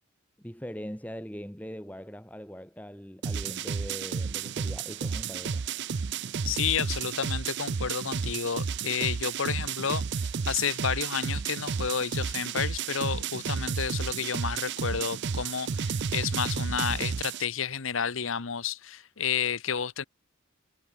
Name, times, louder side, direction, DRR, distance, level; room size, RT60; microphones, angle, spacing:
voice 1, 0.4-5.6, equal, 5° left, 3.8 m, -41 dB
sound 1, 3.2-17.4, right 6 dB, 55° right, 0.5 m, -32 dB
voice 2, 6.5-20.0, left 7 dB, 70° left, 1.0 m, -31 dB
head